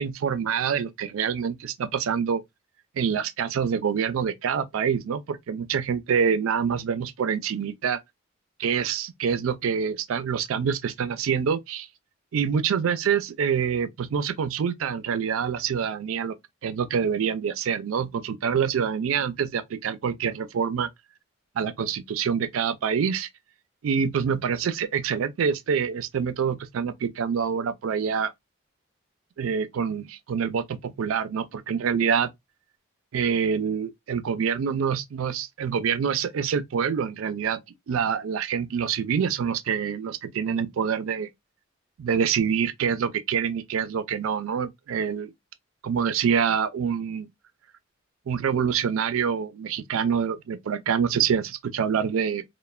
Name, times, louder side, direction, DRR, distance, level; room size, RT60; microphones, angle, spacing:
voice 1, 0.0-2.4 3.0-8.0 8.6-11.9 12.3-16.4 16.6-20.9 21.6-23.3 23.8-28.3 29.4-32.3 33.1-37.6 37.9-41.3 42.0-45.3 45.8-47.3 48.3-52.4, right 7 dB, 80° right, 0.4 m, -26 dB
3.1 x 2.1 x 2.2 m
head